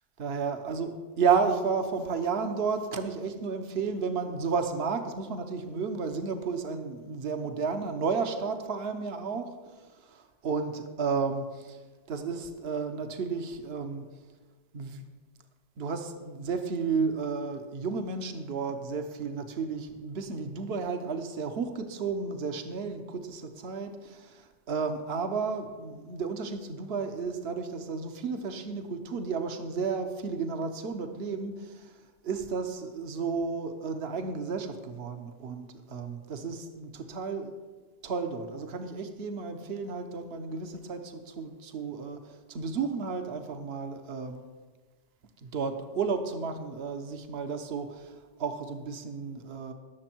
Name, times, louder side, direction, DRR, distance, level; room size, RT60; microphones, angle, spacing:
voice 1, 0.2-0.9 1.2-9.5 10.1-11.8 12.1-14.0 14.7-15.0 15.8-31.8 32.2-37.6 38.0-44.4 45.4-49.7, right 5 dB, 65° right, 7 dB, 1.2 m, -32 dB
19.0 x 7.0 x 4.5 m, 1.4 s
omnidirectional pair, 1.1 m